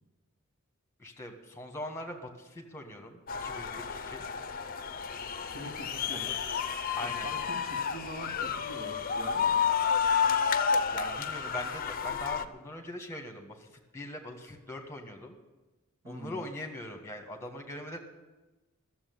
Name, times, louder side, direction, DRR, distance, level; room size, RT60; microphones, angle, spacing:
voice 1, 1.0-4.2 6.1-6.4 6.9-7.3 10.9-13.7 13.9-15.3 16.0-18.0, left 1 dB, 10° left, 4 dB, 1.6 m, -41 dB
sound 1, 3.3-12.4, left 6 dB, 40° left, 0.6 m, -31 dB
voice 2, 5.5-6.3 7.0-9.6 16.0-16.4, right 1 dB, 70° right, 0 dB, 2.7 m, -44 dB
14.0 x 7.4 x 9.5 m, 1.1 s
head